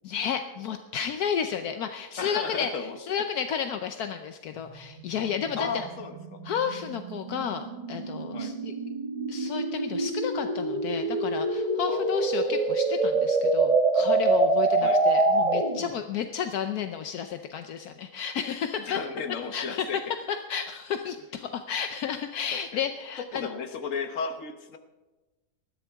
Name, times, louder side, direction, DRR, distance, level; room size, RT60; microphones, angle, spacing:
voice 1, 0.0-5.9 6.4-8.7 9.3-19.0 19.5-20.0 20.3-23.5, left 8 dB, 75° left, 7 dB, 1.2 m, -32 dB
voice 2, 2.2-3.0 5.6-6.4 8.3-8.5 11.9-12.7 14.8-15.0 18.9-20.0 22.5-22.8 23.3-24.8, left 5 dB, 55° left, 7 dB, 1.4 m, -34 dB
sound 1, 4.6-15.9, right 2 dB, 30° right, 1.2 m, -26 dB
20.0 x 14.0 x 3.6 m, 1.1 s
omnidirectional pair, 1.7 m